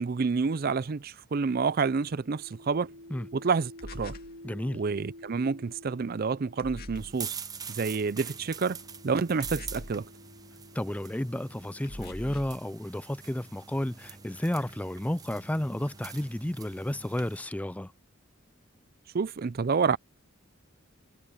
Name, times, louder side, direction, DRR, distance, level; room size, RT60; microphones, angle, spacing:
voice 1, 0.0-2.9 3.3-4.1 4.7-7.4 7.7-8.8 9.0-10.1 19.1-20.0, right 5 dB, 45° right, 0.4 m, -28 dB
sound 1, 2.0-12.4 13.3-17.0, left 1 dB, 80° right, 2.4 m, -52 dB
sound 2, 3.8-4.4 6.6-7.2 9.4-10.1 11.9-12.6, left 1 dB, 45° left, 2.3 m, -42 dB
voice 2, 4.4-4.8 10.7-17.9, left 1 dB, 5° left, 0.4 m, -32 dB
sound 3, 6.9-17.4, right 6 dB, 20° right, 0.8 m, -44 dB
head